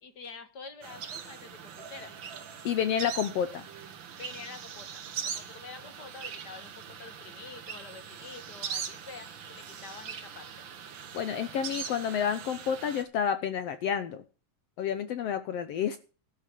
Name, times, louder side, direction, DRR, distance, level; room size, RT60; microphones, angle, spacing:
voice 1, 0.0-2.1 4.2-10.6, left 5 dB, 50° left, 9 dB, 1.3 m, -47 dB
sound 1, 0.8-13.0, right 8 dB, 60° right, 1.3 m, -41 dB
voice 2, 2.6-3.7 11.1-14.2 14.8-16.0, left 8 dB, 80° left, 11 dB, 1.4 m, -30 dB
12.5 x 6.7 x 7.5 m, 0.36 s
omnidirectional pair, 3.9 m